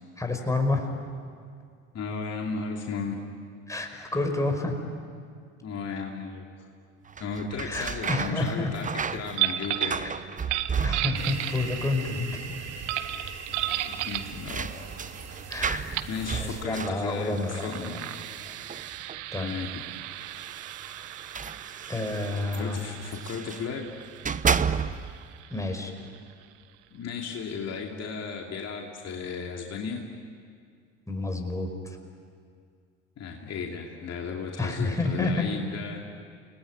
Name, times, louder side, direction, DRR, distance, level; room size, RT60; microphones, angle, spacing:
voice 1, 0.2-0.9 3.7-4.7 7.6-8.7 10.0-10.1 10.8-12.6 15.5-15.9 16.3-18.0 19.3-19.5 21.9-22.8 25.5-25.9 31.1-32.0 34.6-35.5, left 2 dB, 10° left, 3 dB, 5.1 m, -29 dB
voice 2, 1.9-3.2 5.6-6.5 7.2-10.1 13.9-14.8 16.1-18.3 19.4-19.8 22.5-23.9 24.3-24.4 26.9-30.0 33.2-36.0, left 5 dB, 45° left, 0 dB, 2.8 m, -35 dB
sound 1, 7.1-11.5 11.7-12.4 12.7-12.8 13.9-19.3 20.2-23.7 24.1-25.3, right 6 dB, 20° right, 0.9 m, -33 dB
sound 2, 9.3-10.0 10.4-11.9 12.9-14.3 15.5-15.6 15.9-16.2 17.2-26.5, right 14 dB, 75° right, 1.2 m, -35 dB
sound 3, 11.1-16.7, right 6 dB, 45° right, 2.8 m, -40 dB
29.5 x 20.0 x 9.7 m, 2.2 s
hypercardioid pair, 70°, 36 cm